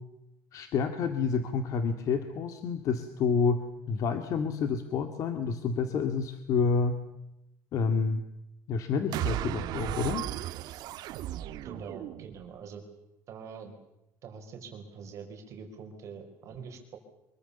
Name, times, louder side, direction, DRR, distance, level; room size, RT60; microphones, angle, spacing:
voice 1, 0.5-3.6 3.9-6.9 7.7-8.2 8.7-10.3, left 5 dB, 45° left, 8 dB, 2.0 m, -29 dB
sound 1, 9.1-12.5, right 13 dB, 60° right, 1.5 m, -35 dB
voice 2, 11.6-12.8 13.3-13.7 14.2-17.0, right 6 dB, 40° right, 3 dB, 4.8 m, -44 dB
25.0 x 23.0 x 6.9 m, 0.88 s
cardioid pair, 170°, 8 cm